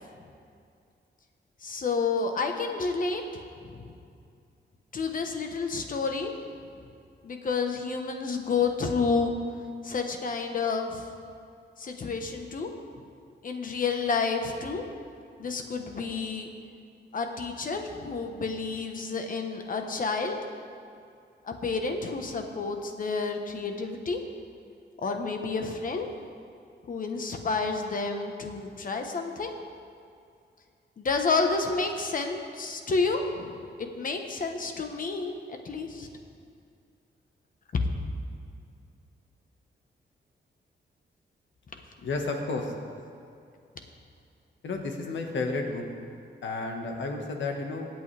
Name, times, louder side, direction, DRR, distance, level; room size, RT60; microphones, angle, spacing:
voice 1, 1.6-3.9 4.9-6.3 7.2-9.3 9.8-11.0 11.8-12.7 12.9-13.0 13.4-14.8 15.4-16.5 17.1-20.4 21.4-24.2 25.0-26.1 26.9-29.5 31.0-36.1, left 4 dB, 45° left, 4 dB, 1.1 m, -30 dB
voice 2, 42.0-42.7 44.6-45.8 46.4-47.9, left 3 dB, 85° left, 2 dB, 1.6 m, -31 dB
25.0 x 8.5 x 3.4 m, 2.4 s
wide cardioid pair, 170°, 19 cm